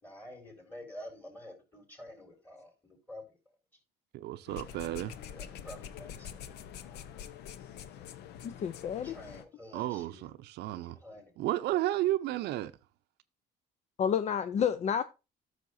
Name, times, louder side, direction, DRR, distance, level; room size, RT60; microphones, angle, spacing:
voice 1, 0.0-3.2 5.3-6.4 9.0-10.3 10.8-11.3, left 1 dB, 10° left, 4.2 m, -49 dB
voice 2, 4.1-5.1 9.7-11.0 11.4-12.7, right 15 dB, 75° right, 0.6 m, -32 dB
sound 1, 4.5-9.4, left 8 dB, 75° left, 0.8 m, -45 dB
voice 3, 8.4-9.2 14.0-15.0, left 8 dB, 40° left, 0.5 m, -30 dB
12.5 x 6.4 x 2.6 m
cardioid pair, 110°, 17 cm